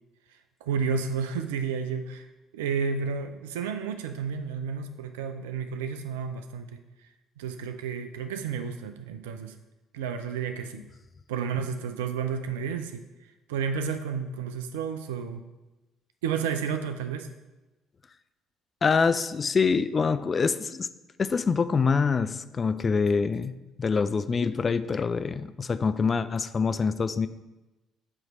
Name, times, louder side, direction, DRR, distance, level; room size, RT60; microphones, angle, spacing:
voice 1, 0.6-2.3 2.5-6.8 7.4-9.5 9.9-10.8 11.3-13.0 13.5-15.4 16.2-17.3, right 6 dB, 75° right, 8 dB, 0.4 m, -31 dB
voice 2, 18.8-20.9 21.2-27.3, left 5 dB, 35° left, 12 dB, 0.3 m, -25 dB
7.6 x 3.1 x 5.3 m, 1.1 s
figure-of-eight pair, 50°, 0 cm